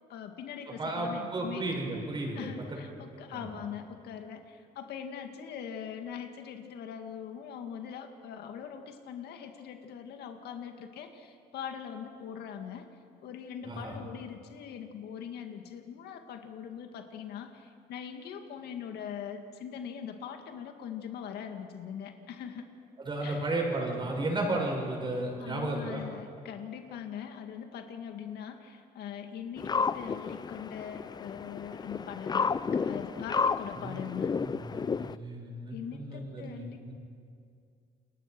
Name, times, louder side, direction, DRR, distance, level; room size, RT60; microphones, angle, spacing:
voice 1, 0.1-1.7 2.3-12.9 13.2-22.7 23.2-23.5 25.4-34.3 35.7-36.9, left 8 dB, 75° left, 5 dB, 2.1 m, -42 dB
voice 2, 0.8-2.5 3.3-3.5 13.6-13.9 23.1-26.0 33.8-34.0 34.4-36.9, right 2 dB, 30° right, 0 dB, 7.1 m, -33 dB
sound 1, 29.6-35.2, left 5 dB, 25° left, 0.5 m, -32 dB
29.5 x 21.0 x 6.1 m, 2.3 s
cardioid pair, 110°, 17 cm